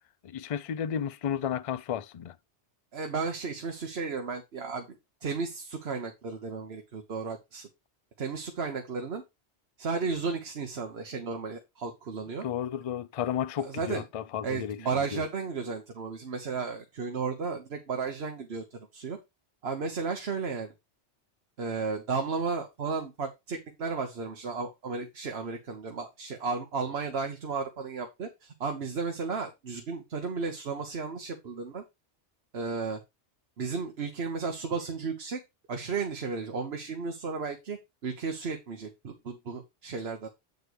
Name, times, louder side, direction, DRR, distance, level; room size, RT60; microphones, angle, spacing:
voice 1, 0.2-2.4 12.4-14.8 15.1-15.2, left 9 dB, 55° left, 0.4 m, -32 dB
voice 2, 2.9-4.9 5.2-7.7 8.2-9.2 9.8-12.5 13.6-14.0 14.4-19.2 19.6-20.7 21.6-31.8 32.5-33.0 33.6-35.4 35.7-40.3, right 4 dB, 65° right, 1.3 m, -34 dB
8.1 x 4.6 x 4.6 m
omnidirectional pair, 1.2 m